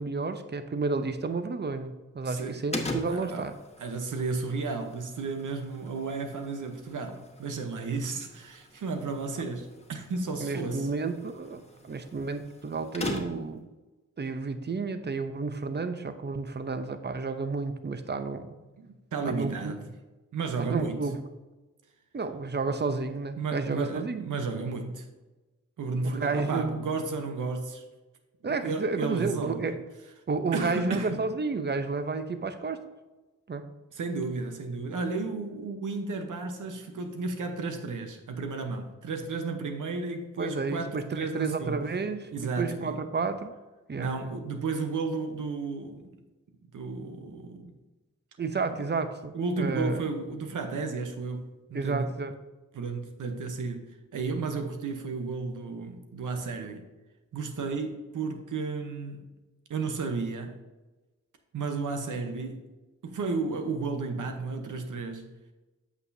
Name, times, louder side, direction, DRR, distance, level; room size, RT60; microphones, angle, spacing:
voice 1, 0.0-3.5 10.4-13.7 14.2-18.5 19.2-19.7 20.6-21.2 22.1-24.2 26.0-26.8 28.4-29.8 30.3-32.9 33.5-33.7 40.4-43.5 43.9-44.3 48.4-50.1 51.7-52.3, right 4 dB, 35° right, 0.7 m, -31 dB
voice 2, 2.2-2.7 3.1-3.5 3.8-10.9 18.8-19.9 20.3-21.0 23.4-25.1 25.8-27.8 28.4-29.6 30.5-31.2 33.9-41.8 42.3-43.0 43.9-46.1 46.7-47.7 49.3-52.1 52.7-56.8 57.3-59.3 59.7-60.6 61.5-62.7 63.0-65.3, right 4 dB, 75° right, 0.9 m, -33 dB
sound 1, 2.7-13.6, left 2 dB, 20° left, 1.2 m, -41 dB
8.1 x 6.1 x 2.7 m
cardioid pair, 50°, 31 cm